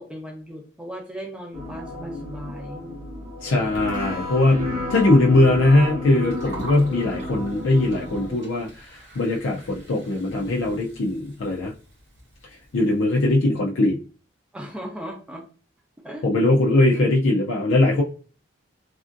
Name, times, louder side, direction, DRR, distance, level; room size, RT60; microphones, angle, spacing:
voice 1, 0.0-2.9 4.6-5.4 14.5-15.4 16.0-16.2, equal, 5° right, 0 dB, 0.6 m, -37 dB
sound 1, 1.5-8.4, left 1 dB, 40° right, 1.0 m, -32 dB
voice 2, 3.4-4.6 4.9-11.7 12.7-14.0 16.2-18.0, left 2 dB, 80° left, -2 dB, 0.4 m, -20 dB
Gurgling, 6.1-13.3, right 1 dB, 75° right, 1.5 m, -44 dB
3.3 x 2.5 x 2.5 m, 0.38 s
head